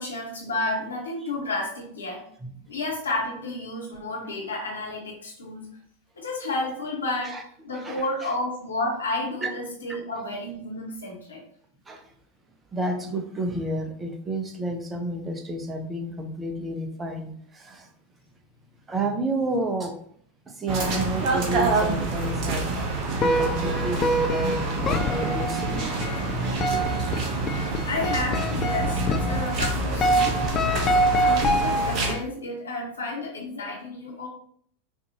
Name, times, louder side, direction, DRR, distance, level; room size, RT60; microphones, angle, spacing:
voice 1, 0.0-2.2 2.7-5.7 6.2-7.4 7.6-11.4 27.8-30.3 31.2-34.3, left 2 dB, 75° left, -2 dB, 1.4 m, -31 dB
voice 2, 7.7-8.3 9.4-9.5 11.9-12.0 12.7-17.9 18.9-20.0 20.5-22.7 23.2-27.0, right 1 dB, 15° right, 4 dB, 0.8 m, -31 dB
sound 1, 20.7-32.1, right 2 dB, 40° right, 1.0 m, -27 dB
sound 2, 23.2-32.2, equal, 30° left, 0.6 m, -26 dB
6.2 x 2.7 x 2.9 m, 0.62 s
figure-of-eight pair, 85°, 0 cm